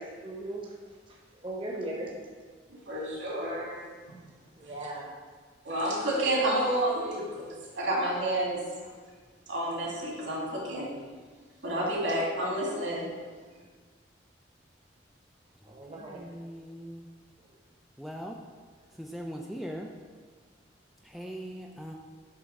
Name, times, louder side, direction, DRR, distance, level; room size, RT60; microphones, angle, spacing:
voice 1, 0.0-2.1 4.6-5.1 13.2-13.3 15.7-16.2 17.4-17.5 21.1-21.3, right 1 dB, 25° right, -3 dB, 0.9 m, -39 dB
voice 2, 2.7-3.8 5.6-8.6 9.5-10.9 11.6-13.1, right 1 dB, 80° right, -4 dB, 2.2 m, -30 dB
voice 3, 16.1-17.1 18.0-18.4 19.0-19.9 21.0-22.0, equal, ahead, 0 dB, 0.3 m, -40 dB
7.7 x 3.5 x 5.3 m, 1.5 s
head